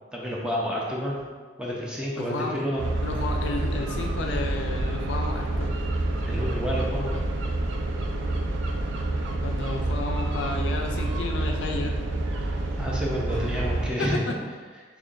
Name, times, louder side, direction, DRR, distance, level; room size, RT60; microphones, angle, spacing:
voice 1, 0.1-1.2 1.6-2.8 6.2-7.2 12.8-14.2, equal, 5° right, -4 dB, 0.5 m, -29 dB
voice 2, 2.2-2.6 3.0-5.7 7.1-7.2 9.4-11.9 14.0-14.3, left 3 dB, 75° left, 2 dB, 0.4 m, -32 dB
sound 1, 2.8-13.9, right 2 dB, 85° right, 0.4 m, -28 dB
3.7 x 2.9 x 2.5 m, 1.5 s
head